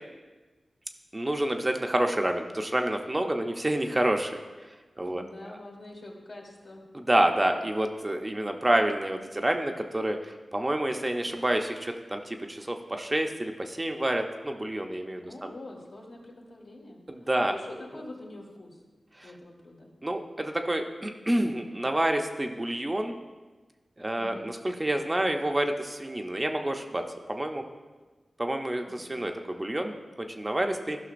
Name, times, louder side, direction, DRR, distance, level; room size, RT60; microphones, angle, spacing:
voice 1, 1.1-4.4 5.0-5.2 7.1-15.5 17.1-17.5 19.2-19.3 20.0-23.1 24.0-27.6 28.4-31.0, right 1 dB, 25° right, 4 dB, 0.7 m, -28 dB
voice 2, 5.1-6.8 15.2-18.8 19.2-19.9 24.2-24.5 28.8-29.1, left 2 dB, 70° left, -2 dB, 1.8 m, -45 dB
13.0 x 5.7 x 2.6 m, 1.3 s
cardioid pair, 45°, 0 cm